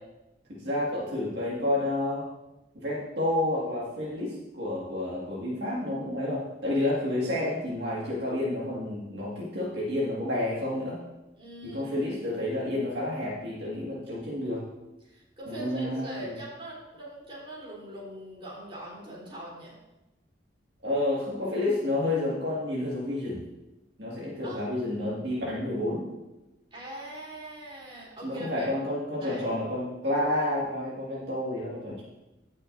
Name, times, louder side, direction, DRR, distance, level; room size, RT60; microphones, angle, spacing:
voice 1, 0.5-2.3 2.7-11.0 11.6-14.6 15.5-16.4 20.8-23.4 24.0-26.0 28.2-32.0, left 1 dB, 65° right, -6 dB, 1.9 m, -30 dB
voice 2, 11.4-12.1 15.0-19.8 24.4-24.6 26.7-28.7 29.2-29.4, right 1 dB, 30° right, -6 dB, 3.5 m, -42 dB
15.5 x 6.3 x 2.6 m, 1.0 s
head